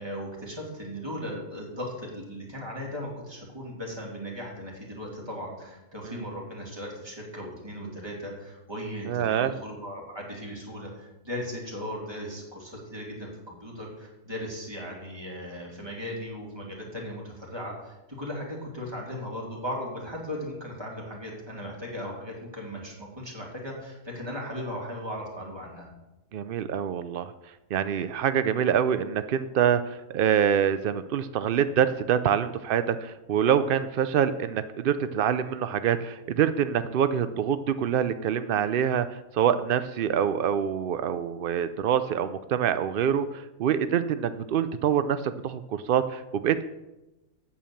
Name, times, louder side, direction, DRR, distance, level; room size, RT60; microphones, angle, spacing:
voice 1, 0.0-25.9, equal, 15° right, -3 dB, 2.8 m, -37 dB
voice 2, 9.1-9.5 26.3-27.3 27.7-46.6, right 8 dB, 85° right, 12 dB, 0.4 m, -25 dB
8.7 x 7.1 x 7.1 m, 0.99 s
omnidirectional pair, 1.5 m